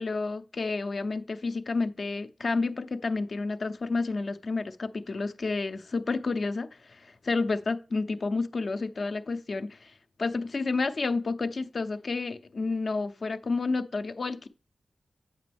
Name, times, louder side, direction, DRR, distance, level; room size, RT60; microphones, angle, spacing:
voice 1, 0.0-9.9 10.2-14.5, left 3 dB, 50° left, 0.6 m, -30 dB
8.2 x 6.0 x 3.4 m
wide cardioid pair, 90°, 0 cm